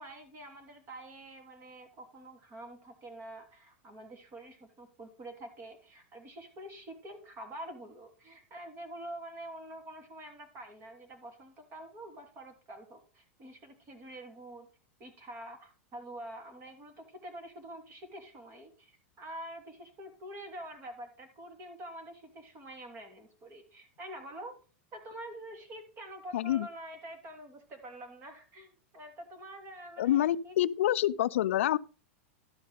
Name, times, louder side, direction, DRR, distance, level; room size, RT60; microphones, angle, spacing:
voice 1, 0.0-14.7 15.0-24.6 24.9-30.5, right 1 dB, 35° right, 2.9 m, -46 dB
voice 2, 26.3-26.7 30.0-31.8, left 13 dB, 85° left, 0.4 m, -27 dB
12.0 x 5.3 x 5.0 m
supercardioid pair, 130°, 7 cm